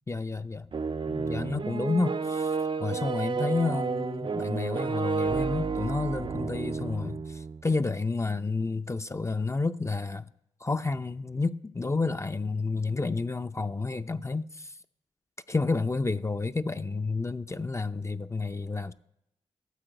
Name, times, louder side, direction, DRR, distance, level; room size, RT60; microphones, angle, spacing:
voice 1, 0.1-0.7 1.1-10.3 10.6-14.8 15.5-18.9, left 3 dB, 20° left, 0.5 m, -30 dB
sound 1, 0.7-7.7, right 5 dB, 40° right, 0.4 m, -31 dB
12.5 x 4.4 x 8.0 m
supercardioid pair, 40°, 13 cm